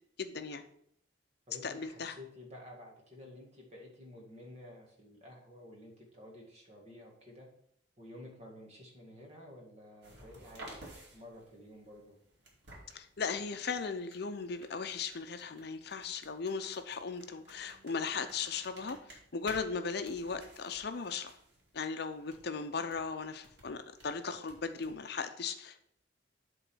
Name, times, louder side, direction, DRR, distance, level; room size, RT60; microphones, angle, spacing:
voice 1, 0.2-0.6 1.6-2.2 12.9-21.3 21.7-25.8, left 5 dB, 60° left, 9 dB, 0.6 m, -37 dB
voice 2, 1.5-7.5 8.0-10.7 11.1-12.2, left 1 dB, 35° right, -1 dB, 2.0 m, -52 dB
sound 1, 10.0-25.1, right 1 dB, 60° right, 2.4 m, -56 dB
8.0 x 3.8 x 6.2 m, 0.69 s
head